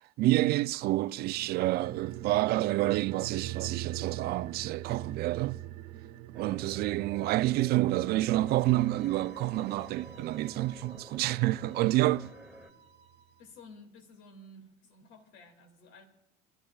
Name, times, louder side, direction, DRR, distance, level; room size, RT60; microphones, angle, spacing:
voice 1, 0.2-5.6 6.3-12.3, right 17 dB, 50° right, 0.4 m, -28 dB
sound 1, 1.2-12.1 12.4-12.5, right 13 dB, 80° right, 1.2 m, -43 dB
sound 2, 6.3-12.7, equal, 5° left, 2.2 m, -50 dB
voice 2, 6.4-6.8 13.4-16.1, left 1 dB, 70° left, 2.3 m, -52 dB
sound 3, 8.4-13.4, right 5 dB, 30° right, 1.4 m, -56 dB
24.0 x 12.0 x 2.4 m
hypercardioid pair, 75°, 20 cm